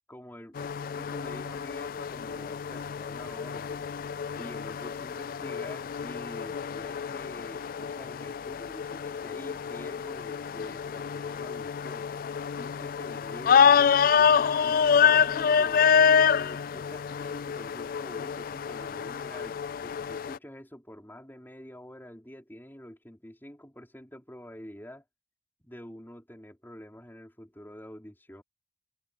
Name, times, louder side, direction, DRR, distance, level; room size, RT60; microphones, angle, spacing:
voice 1, 0.1-3.9 4.4-12.1 12.5-15.9 16.4-25.0 25.6-28.4, equal, 10° left, 5.3 m, -47 dB
sound 1, 0.6-20.4, left 7 dB, 55° left, 0.3 m, -27 dB
head